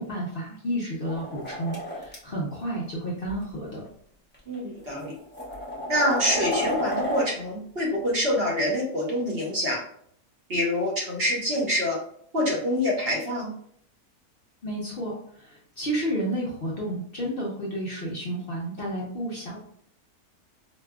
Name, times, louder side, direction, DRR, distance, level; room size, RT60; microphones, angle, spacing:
voice 1, 0.0-3.8 14.6-19.6, right 1 dB, 50° left, -4 dB, 0.7 m, -31 dB
sound 1, 1.1-2.2 3.3-3.4 4.3-4.4 5.0-7.3, equal, 10° left, 0.6 m, -31 dB
voice 2, 4.5-5.1 5.9-9.8 10.5-12.0 12.3-13.5, left 1 dB, 45° right, -3 dB, 0.9 m, -26 dB
4.9 x 2.3 x 2.3 m, 0.64 s
omnidirectional pair, 1.6 m